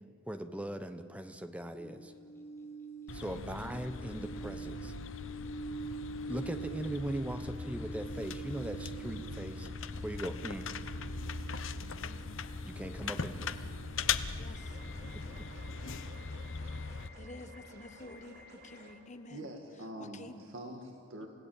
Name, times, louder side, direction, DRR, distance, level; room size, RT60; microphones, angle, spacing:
voice 1, 0.3-2.1 3.1-4.9 6.2-9.7 10.0-10.7 12.7-13.6 15.1-15.5, right 1 dB, 5° right, 9 dB, 0.8 m, -40 dB
sound 1, 1.8-12.1 12.3-14.4 14.8-15.9, right 4 dB, 15° left, 2.1 m, -46 dB
sound 2, 3.1-17.1, left 5 dB, 70° left, 0.8 m, -40 dB
voice 2, 11.8-12.2 14.4-14.8 17.2-19.5 20.0-20.4 21.2-21.3, left 2 dB, 35° left, 7 dB, 1.3 m, -50 dB
sound 3, 14.5-18.9, equal, 50° right, 3.9 m, -53 dB
voice 3, 19.3-21.3, right 1 dB, 70° right, 2 dB, 2.2 m, -45 dB
28.5 x 16.5 x 8.9 m, 2.4 s
head